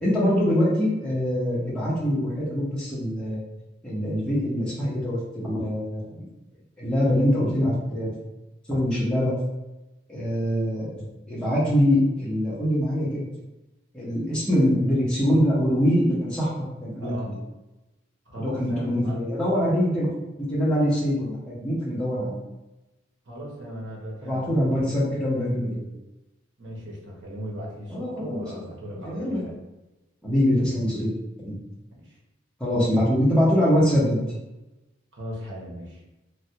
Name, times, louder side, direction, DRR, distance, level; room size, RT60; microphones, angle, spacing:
voice 1, 0.0-3.4 3.8-6.2 6.8-8.1 8.7-9.3 10.1-10.9 11.3-13.2 13.9-16.5 16.8-17.4 18.4-20.1 20.5-22.4 24.2-25.7 27.9-28.6 29.0-29.4 30.2-31.1 31.4-31.6 32.6-34.2, equal, 5° left, -8 dB, 0.8 m, -23 dB
voice 2, 17.0-17.4 18.3-19.2 23.3-25.0 25.4-25.9 26.6-29.5 30.7-30.8 32.0-32.2 35.1-36.0, equal, 80° right, -3 dB, 1.0 m, -38 dB
3.2 x 2.3 x 2.8 m, 0.99 s
head